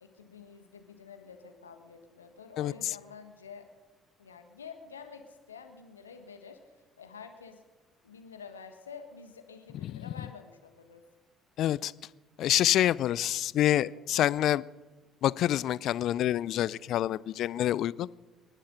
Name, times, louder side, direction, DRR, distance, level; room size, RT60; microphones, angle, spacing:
voice 1, 0.0-3.6 4.2-7.6 8.0-11.0, left 5 dB, 85° left, 7 dB, 1.5 m, -49 dB
voice 2, 11.6-11.9 12.4-14.6 15.2-18.1, left 12 dB, 60° left, 22 dB, 0.4 m, -27 dB
28.5 x 11.5 x 4.0 m, 1.3 s
figure-of-eight pair, 50°, 0 cm